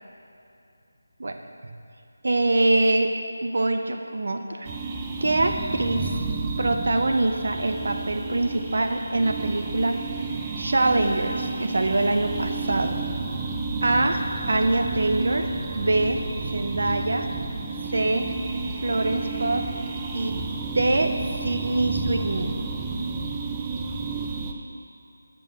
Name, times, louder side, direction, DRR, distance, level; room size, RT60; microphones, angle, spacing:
voice 1, 2.2-3.1 3.4-4.7 5.2-6.1 6.6-10.0 10.6-13.0 13.8-16.2 16.5-17.3 17.9-18.3 18.8-19.6 20.1-21.1 21.4-22.6, right 2 dB, 55° right, 5 dB, 0.6 m, -24 dB
sound 1, 4.6-24.5, right 3 dB, 10° right, 0.4 m, -31 dB
9.1 x 5.3 x 6.6 m, 2.7 s
figure-of-eight pair, 175°, 0 cm